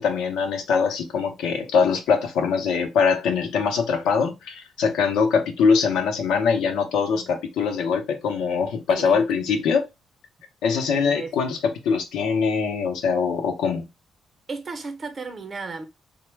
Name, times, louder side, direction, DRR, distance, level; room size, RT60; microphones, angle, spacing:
voice 1, 0.0-9.8 10.6-13.9, left 5 dB, 85° left, 0.6 m, -22 dB
voice 2, 8.9-9.4 10.9-11.3 14.5-15.9, right 4 dB, 40° right, 0.7 m, -35 dB
3.0 x 2.1 x 3.3 m
cardioid pair, 90°, 0 cm